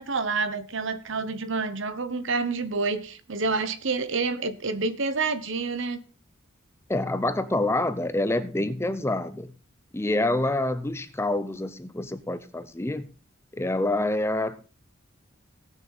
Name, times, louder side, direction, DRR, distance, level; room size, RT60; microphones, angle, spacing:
voice 1, 0.0-6.0, right 4 dB, 65° right, 1.0 m, -28 dB
voice 2, 6.9-9.5 9.9-13.1 13.5-14.6, left 2 dB, 10° left, 0.5 m, -27 dB
18.0 x 6.3 x 4.1 m
head